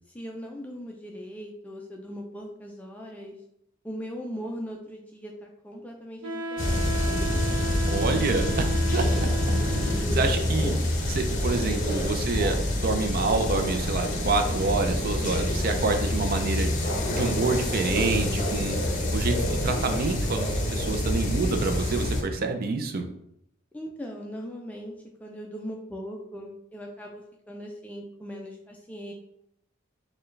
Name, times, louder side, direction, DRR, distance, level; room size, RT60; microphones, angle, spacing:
voice 1, 0.1-3.4 3.8-6.8 9.7-10.4 18.1-18.8 23.7-29.1, equal, 10° left, 0 dB, 0.4 m, -39 dB
Wind instrument woodwind instrument, 6.2-10.3, right 1 dB, 90° right, 0.7 m, -34 dB
sound 1, 6.6-22.2, left 1 dB, 40° left, 0.6 m, -27 dB
voice 2, 7.9-8.6 8.9-9.3 9.9-10.7 11.1-18.8 19.1-23.1, right 3 dB, 50° right, 5 dB, 0.5 m, -27 dB
4.5 x 2.2 x 3.2 m, 0.75 s
head